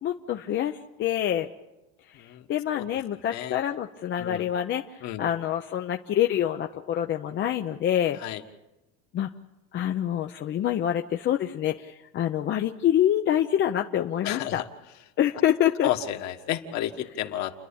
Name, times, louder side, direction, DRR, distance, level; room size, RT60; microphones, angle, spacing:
voice 1, 0.0-1.5 2.1-2.2 2.5-8.2 9.1-9.3 9.7-14.6 15.2-15.9, left 11 dB, 30° left, 4 dB, 0.7 m, -26 dB
voice 2, 3.3-3.6 4.2-4.4 5.0-5.2 8.2-8.4 14.2-14.6 15.8-17.5, left 12 dB, 50° left, 6 dB, 1.6 m, -31 dB
30.0 x 11.0 x 8.6 m, 1.0 s
cardioid pair, 155°, 35 cm